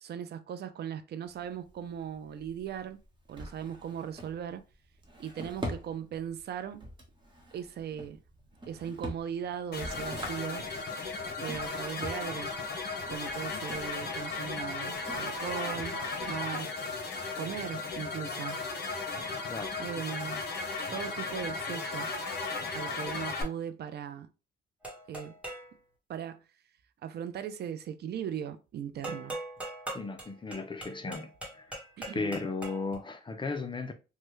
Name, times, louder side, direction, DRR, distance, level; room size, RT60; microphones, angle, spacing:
voice 1, 0.0-3.0 3.3-4.6 5.2-6.8 7.5-8.2 8.7-10.7 11.4-12.6 13.1-16.7 17.4-18.6 19.8-20.4 20.9-22.1 22.7-24.3 25.1-25.4 26.1-26.4 27.0-29.4 32.0-32.3, right 8 dB, 55° right, 0.5 m, -38 dB
Drawer open or close, 1.2-16.4, equal, 25° right, 1.0 m, -45 dB
sound 1, 9.7-23.4, left 3 dB, 55° left, 0.9 m, -36 dB
sound 2, 24.8-25.7 29.0-33.0, right 1 dB, 5° right, 1.3 m, -41 dB
voice 2, 29.9-31.3 31.6-31.7 32.1-33.9, left 3 dB, 25° left, 0.4 m, -35 dB
3.2 x 2.2 x 3.1 m
cardioid pair, 90°, 20 cm